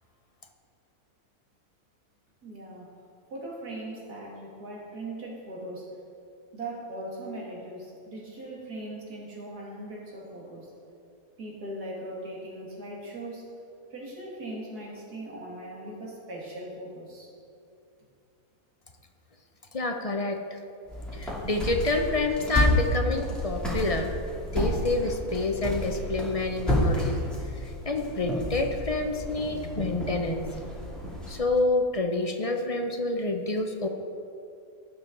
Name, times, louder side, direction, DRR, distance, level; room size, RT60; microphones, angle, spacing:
voice 1, 2.4-2.9 3.3-5.9 6.5-10.7 11.4-13.4 13.9-17.3, right 1 dB, 90° right, -4 dB, 2.8 m, -39 dB
voice 2, 19.7-20.6 21.1-24.1 24.5-27.2 27.5-30.4 31.3-33.9, left 2 dB, 45° left, 4 dB, 0.4 m, -28 dB
sound 1, 20.9-31.4, left 1 dB, ahead, 2.8 m, -30 dB
18.0 x 7.1 x 3.9 m, 2.6 s
omnidirectional pair, 1.6 m